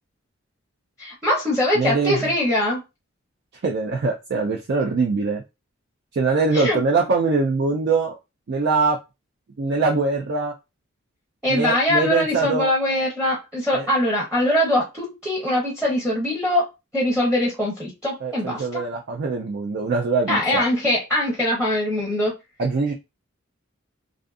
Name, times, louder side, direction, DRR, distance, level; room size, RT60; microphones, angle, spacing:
voice 1, 1.0-2.8 6.5-6.8 11.4-16.7 16.9-18.8 20.3-22.3, left 1 dB, 5° right, -4 dB, 0.7 m, -22 dB
voice 2, 1.7-2.3 3.6-5.4 6.1-8.2 8.5-9.0 9.6-10.5 11.5-12.7 13.7-13.9 18.2-20.6 22.6-22.9, right 4 dB, 55° right, 1 dB, 0.4 m, -22 dB
2.6 x 2.4 x 2.4 m, 0.24 s
head